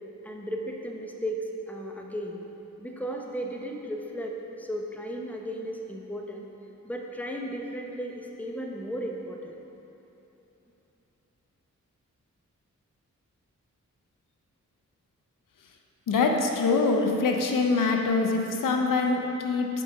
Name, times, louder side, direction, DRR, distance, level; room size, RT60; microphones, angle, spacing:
voice 1, 0.2-2.4 2.8-6.5 6.8-9.5, equal, 5° left, 0 dB, 0.9 m, -35 dB
voice 2, 16.1-19.7, left 3 dB, 85° left, 3 dB, 0.7 m, -24 dB
5.9 x 5.3 x 5.8 m, 2.9 s
cardioid pair, 55°, 32 cm